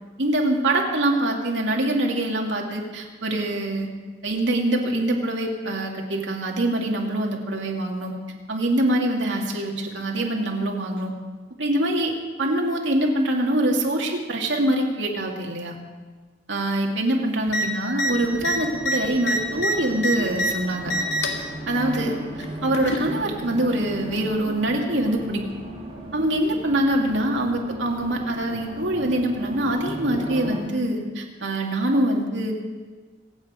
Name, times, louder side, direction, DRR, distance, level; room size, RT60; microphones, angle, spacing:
voice 1, 0.2-3.9 4.2-8.1 8.5-11.1 11.6-12.1 12.4-15.8 16.5-20.9 21.7-22.2 22.6-25.4 26.1-32.5, right 1 dB, 85° right, 0 dB, 2.5 m, -24 dB
sound 1, 17.5-17.6 17.9-18.1 18.4-20.5 20.8-21.4 22.4-23.1 24.1-24.2, equal, 75° left, 1.9 m, -25 dB
Race car auto racing, 18.0-30.6, equal, 30° right, 3.4 m, -36 dB
25.5 x 8.9 x 5.1 m, 1.4 s
head